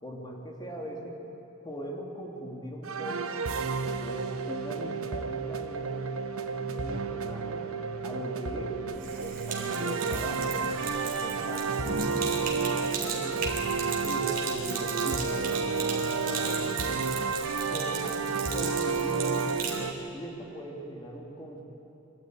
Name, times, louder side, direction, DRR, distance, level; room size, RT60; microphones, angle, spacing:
voice 1, 0.0-1.1 1.6-3.4 3.8-6.0 6.4-7.7 8.0-13.4 14.0-17.2 17.7-19.6 20.1-21.6, equal, 20° left, 0 dB, 2.7 m, -40 dB
sound 1, 2.8-19.9, right 5 dB, 75° right, 1.0 m, -31 dB
Sink (filling or washing), 8.9-19.8, right 5 dB, 40° right, 3.5 m, -37 dB
24.5 x 14.0 x 9.7 m, 3.0 s
head